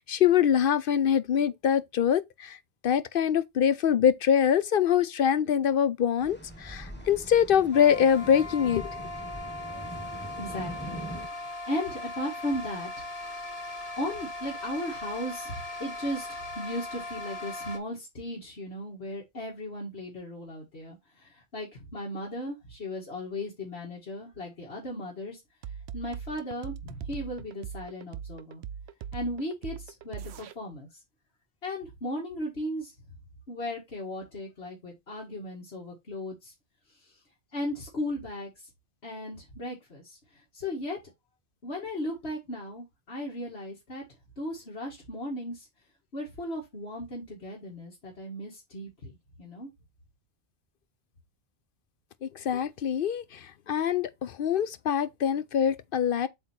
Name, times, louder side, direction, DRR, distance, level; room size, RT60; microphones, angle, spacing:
voice 1, 0.0-2.6 2.8-9.0 52.2-56.3, left 8 dB, 65° left, 0.7 m, -24 dB
sound 1, 6.2-11.3, right 1 dB, 10° left, 1.3 m, -42 dB
sound 2, 7.7-17.8, left 2 dB, 35° left, 1.3 m, -39 dB
voice 2, 9.7-11.0 11.3-12.9 14.0-25.4 25.9-28.6 29.1-30.9 31.6-32.9 33.5-36.5 37.0-37.2 37.5-38.5 39.0-41.0 41.6-44.0 44.4-45.7 46.1-49.1 49.4-49.7, left 1 dB, 80° left, 2.2 m, -36 dB
sound 3, 25.6-30.5, right 8 dB, 85° right, 0.9 m, -40 dB
7.8 x 3.0 x 4.4 m
omnidirectional pair, 1.1 m